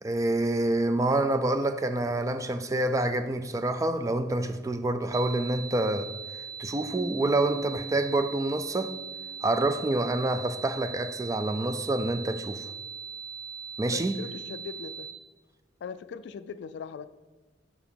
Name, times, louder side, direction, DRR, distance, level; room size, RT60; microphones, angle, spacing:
voice 1, 0.0-6.1 6.6-9.0 9.4-12.7 13.8-14.2, right 2 dB, 15° right, 0.3 m, -27 dB
sound 1, 5.1-15.1, right 6 dB, 60° right, 0.6 m, -40 dB
Keyboard (musical), 6.9-9.5, right 2 dB, 35° right, 1.4 m, -42 dB
voice 2, 13.8-15.1 15.8-17.1, left 6 dB, 65° left, 0.3 m, -40 dB
5.6 x 4.9 x 5.2 m
head